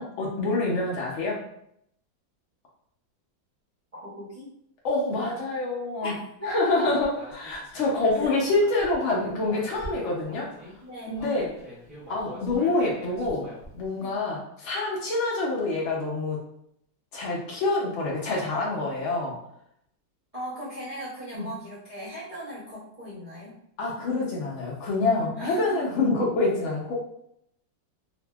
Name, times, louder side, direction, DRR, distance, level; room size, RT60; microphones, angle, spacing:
voice 1, 0.0-1.4 4.8-6.1 6.4-10.5 11.1-11.5 12.1-16.4 17.1-19.4 21.3-21.5 23.8-26.9, left 2 dB, 70° left, -3 dB, 0.7 m, -26 dB
voice 2, 3.9-4.5 6.0-6.1 6.4-7.0 8.2-8.3 10.8-11.1 14.0-14.1 20.3-23.5 25.3-25.8, equal, 50° right, -10 dB, 0.4 m, -37 dB
Human voice, 6.8-10.7 11.1-13.9, equal, 25° right, 0.8 m, -44 dB
2.7 x 2.5 x 2.2 m, 0.73 s
omnidirectional pair, 1.9 m